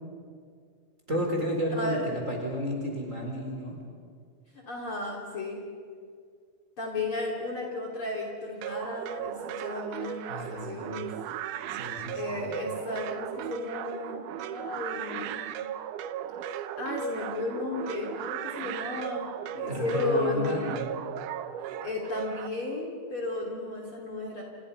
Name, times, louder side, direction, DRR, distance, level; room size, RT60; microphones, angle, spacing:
voice 1, 1.1-3.8 10.0-11.0 11.7-12.5 19.7-20.9, equal, 20° right, 0 dB, 4.2 m, -32 dB
voice 2, 1.7-2.2 4.7-5.6 6.8-11.1 12.1-14.2 14.4-15.5 16.4-19.3 19.5-20.7 21.6-24.4, left 2 dB, 35° left, 0 dB, 3.5 m, -34 dB
sound 1, 8.6-22.5, right 10 dB, 70° right, 2.0 m, -36 dB
30.0 x 27.5 x 5.6 m, 2.1 s
omnidirectional pair, 4.3 m